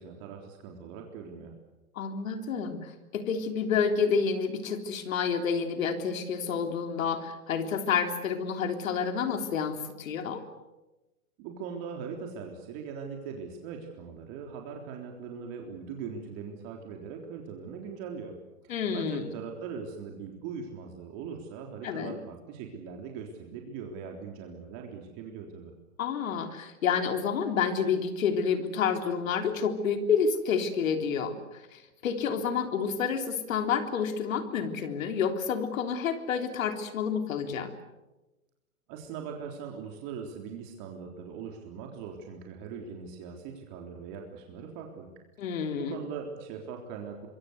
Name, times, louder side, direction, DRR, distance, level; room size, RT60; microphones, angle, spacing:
voice 1, 0.0-1.5 11.4-18.4 18.9-25.7 38.9-45.1 45.8-47.3, right 6 dB, 40° right, 2 dB, 3.7 m, -40 dB
voice 2, 2.0-10.4 18.7-19.3 21.8-22.2 26.0-37.7 45.4-46.0, left 6 dB, 65° left, 7 dB, 3.6 m, -29 dB
26.0 x 23.0 x 8.1 m, 1.1 s
hypercardioid pair, 115°, 43 cm